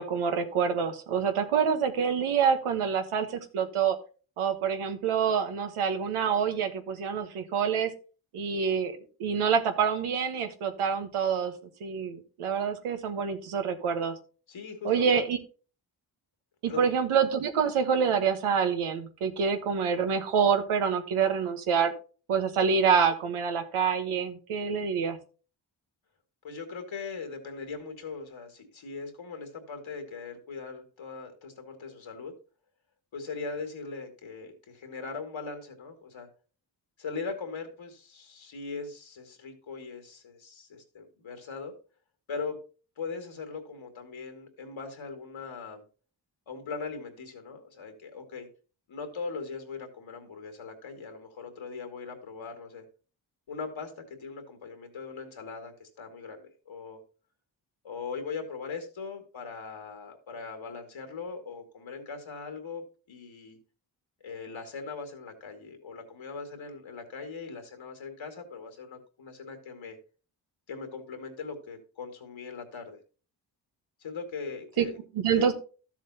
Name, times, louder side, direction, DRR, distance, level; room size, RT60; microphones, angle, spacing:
voice 1, 0.0-3.9 4.4-7.9 8.3-11.5 11.8-14.1 14.8-15.4 16.6-21.9 22.3-25.2 74.8-74.9 75.1-75.5, right 7 dB, 90° right, 6 dB, 1.2 m, -26 dB
voice 2, 14.5-15.3 16.7-16.9 26.4-32.3 33.1-36.3 37.0-41.7 42.3-42.6 43.0-45.8 46.5-48.5 48.9-52.8 53.5-57.0 57.8-63.6 64.2-70.0 70.7-73.0 74.0-75.0 75.3-75.5, left 4 dB, 70° left, 5 dB, 2.3 m, -40 dB
13.0 x 7.2 x 2.8 m, 0.36 s
supercardioid pair, 45°, 49 cm